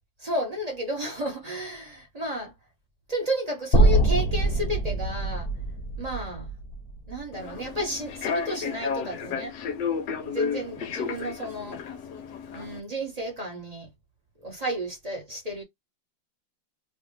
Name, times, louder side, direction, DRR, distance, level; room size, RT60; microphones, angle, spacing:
voice 1, 0.2-2.5 3.1-5.5 6.0-6.5 7.1-9.5 10.1-11.8 12.5-13.9 14.4-15.6, equal, 25° right, 1.1 m, -32 dB
sound 1, 3.7-7.9, right 2 dB, 35° left, 1.2 m, -24 dB
Human voice / Subway metro underground, 7.3-12.8, left 6 dB, 70° left, 1.3 m, -32 dB
3.3 x 2.5 x 3.1 m
omnidirectional pair, 2.0 m